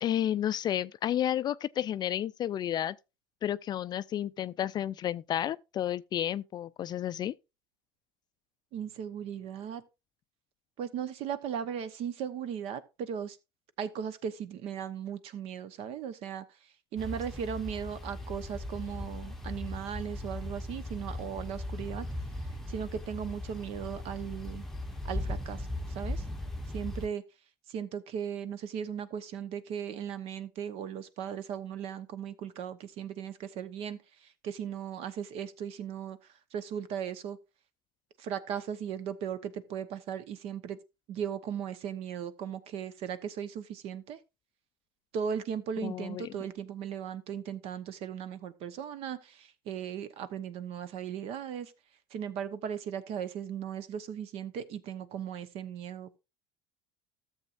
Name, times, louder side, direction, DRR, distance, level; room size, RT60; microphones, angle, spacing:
voice 1, 0.0-2.9 3.4-7.3 45.8-46.3, left 11 dB, 35° left, 0.4 m, -31 dB
voice 2, 8.7-9.8 10.8-13.4 13.8-16.4 16.9-22.1 22.7-24.7 25.0-25.7 25.9-26.2 26.7-27.2 27.7-36.2 36.5-37.4 38.2-40.8 41.1-44.2 45.1-51.7 52.1-56.2, right 8 dB, 55° right, 1.0 m, -37 dB
sound 1, 17.0-27.1, left 1 dB, 5° left, 0.9 m, -38 dB
13.5 x 7.2 x 2.5 m
supercardioid pair, 95°, 12 cm